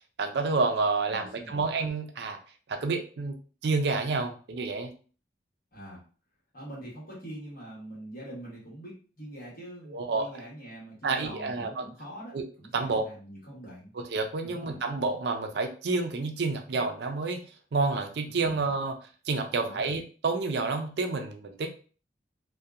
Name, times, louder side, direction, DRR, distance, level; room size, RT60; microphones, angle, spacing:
voice 1, 0.2-2.4 2.7-3.3 3.6-4.9 9.9-10.3 11.0-11.8 12.3-12.5 12.7-13.1 14.0-17.4 17.7-19.0 19.3-21.7, right 3 dB, 60° right, 4 dB, 0.4 m, -29 dB
voice 2, 1.1-1.6 5.7-6.0 6.5-13.9 14.4-14.8 18.2-18.6 19.6-19.8, right 1 dB, 50° left, -5 dB, 1.2 m, -44 dB
2.7 x 2.2 x 2.3 m, 0.38 s
head